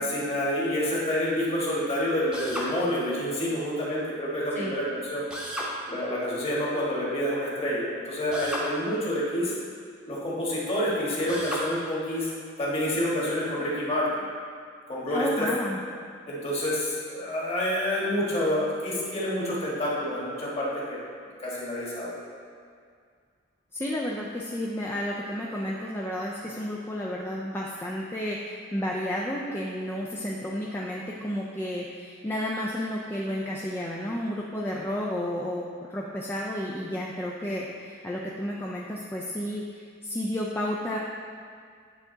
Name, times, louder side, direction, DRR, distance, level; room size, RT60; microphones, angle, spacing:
voice 1, 0.0-5.2 5.9-9.5 10.1-12.3 12.6-14.2 14.9-15.5 16.3-22.1, equal, 30° left, -6 dB, 1.5 m, -28 dB
Drill, 2.3-2.7 5.3-5.7 8.3-8.7 11.3-11.7, equal, 5° right, 0.9 m, -33 dB
voice 2, 15.1-15.8 23.7-41.0, left 1 dB, 10° left, -4 dB, 0.4 m, -32 dB
9.2 x 3.6 x 3.9 m, 2.2 s
head